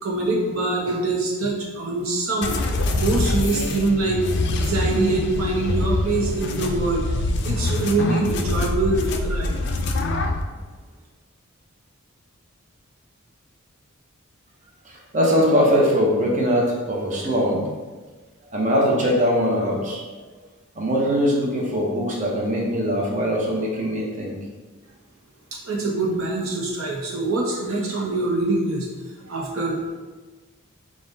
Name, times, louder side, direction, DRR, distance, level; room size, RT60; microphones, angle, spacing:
voice 1, 0.0-2.5 2.9-4.2 4.5-7.0 7.4-9.6 25.5-28.9 29.3-30.0, right 2 dB, 85° right, -2 dB, 0.9 m, -24 dB
sound 1, 2.4-10.4, left 2 dB, 55° left, 0.4 m, -24 dB
voice 2, 14.8-17.7 18.5-20.0 20.8-24.3, equal, 35° right, -2 dB, 0.8 m, -21 dB
3.8 x 2.5 x 3.8 m, 1.3 s
head